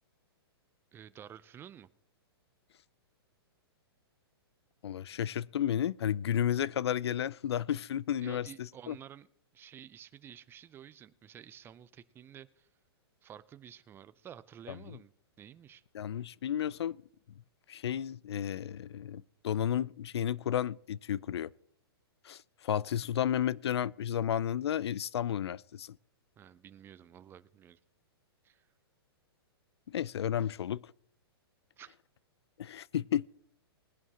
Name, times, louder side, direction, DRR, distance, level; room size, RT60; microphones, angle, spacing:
voice 1, 0.9-1.9 8.2-9.3 9.5-12.7 13.2-15.1 15.4-15.8 26.4-27.8 28.4-28.6 31.8-32.0, right 9 dB, 15° right, 0.5 m, -51 dB
voice 2, 4.8-8.5 8.9-9.0 15.9-17.0 17.7-21.5 22.2-26.0 29.9-30.8 32.6-33.3, left 10 dB, 80° left, 0.4 m, -32 dB
20.0 x 11.0 x 2.9 m
hypercardioid pair, 135°, 13 cm